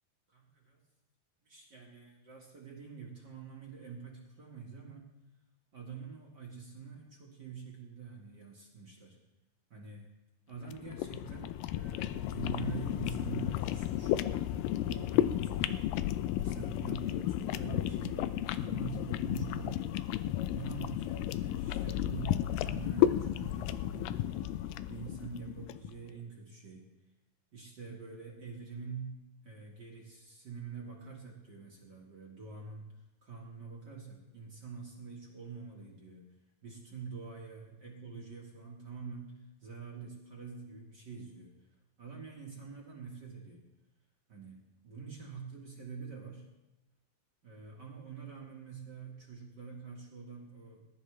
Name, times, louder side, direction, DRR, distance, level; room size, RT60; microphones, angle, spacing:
voice 1, 0.3-0.8 1.4-5.1 5.7-9.2 9.7-10.1 10.5-15.9 16.4-20.0 20.5-24.4 24.9-26.9 27.5-32.9 33.2-36.3 36.6-41.5 42.0-43.7 44.3-46.4 47.4-50.9, right 5 dB, 40° right, -1 dB, 1.7 m, -46 dB
sound 1, 10.7-25.9, left 13 dB, 85° left, 2.3 m, -33 dB
20.5 x 11.5 x 3.3 m, 0.98 s
omnidirectional pair, 3.9 m